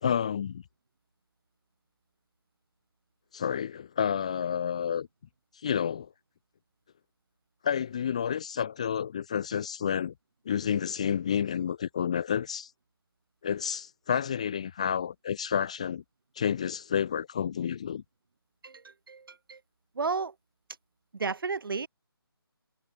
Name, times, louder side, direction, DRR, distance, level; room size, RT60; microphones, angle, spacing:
voice 1, 0.0-0.6 3.3-5.1 5.6-6.1 7.6-10.1 10.5-12.7 13.4-16.0 16.4-18.0, left 8 dB, 15° left, 0.4 m, -30 dB
voice 2, 18.6-19.6 19.9-20.3 21.1-21.9, right 4 dB, 60° right, 1.4 m, -33 dB
figure-of-eight pair, 165°, 13 cm